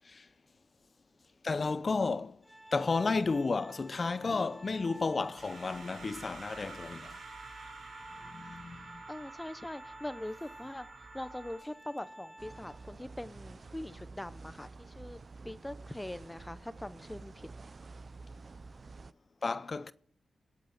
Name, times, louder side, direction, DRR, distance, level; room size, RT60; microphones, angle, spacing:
voice 1, 1.4-2.4 2.7-7.2 8.3-9.0 19.4-19.9, left 4 dB, 45° left, 0.6 m, -32 dB
Organ, 2.4-13.1, right 1 dB, 10° right, 3.1 m, -53 dB
sound 1, 5.3-11.6, right 4 dB, 85° right, 3.5 m, -49 dB
voice 2, 9.1-10.9 11.1-15.2 15.4-17.5, left 1 dB, 15° left, 0.9 m, -42 dB
sound 2, 12.4-19.1, right 3 dB, 50° right, 0.5 m, -49 dB
24.5 x 8.4 x 4.4 m
cardioid pair, 65°, 0 cm